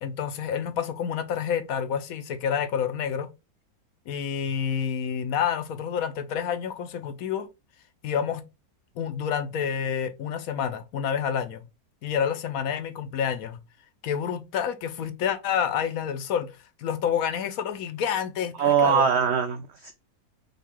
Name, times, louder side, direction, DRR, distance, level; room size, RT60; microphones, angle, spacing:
voice 1, 0.0-3.3 4.1-7.5 8.0-8.4 9.0-11.7 12.0-13.6 14.0-16.5 16.8-18.5 18.8-19.0, left 8 dB, 70° left, 1.0 m, -28 dB
voice 2, 18.6-19.9, right 7 dB, 85° right, 0.6 m, -22 dB
5.6 x 2.3 x 3.6 m
omnidirectional pair, 1.7 m